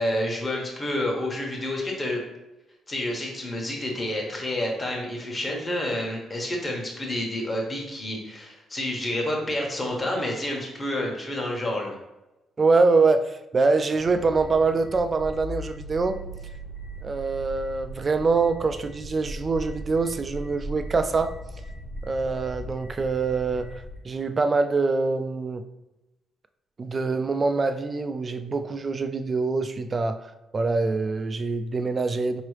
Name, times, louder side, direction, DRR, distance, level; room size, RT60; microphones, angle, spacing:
voice 1, 0.0-2.2 2.9-12.0, left 1 dB, 25° left, -1 dB, 1.2 m, -29 dB
voice 2, 12.6-16.2 17.0-21.3 22.0-25.6 26.8-32.4, right 4 dB, 35° right, 8 dB, 0.3 m, -24 dB
sound 1, 14.0-24.0, right 1 dB, 90° left, 1.2 m, -39 dB
4.6 x 3.0 x 3.2 m, 0.98 s
cardioid pair, 90°, 0 cm